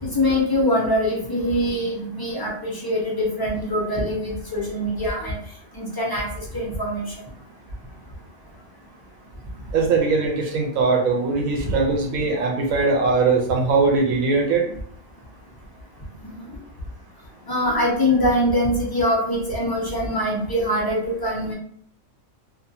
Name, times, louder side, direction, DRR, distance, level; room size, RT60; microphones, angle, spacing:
voice 1, 0.0-5.3 5.7-6.3 6.5-7.0 11.6-11.7 16.2-16.4 17.5-21.5, left 1 dB, 35° left, -4 dB, 0.3 m, -23 dB
voice 2, 9.7-14.7, right 4 dB, 80° right, 1 dB, 1.0 m, -21 dB
2.5 x 2.3 x 2.7 m, 0.62 s
omnidirectional pair, 1.4 m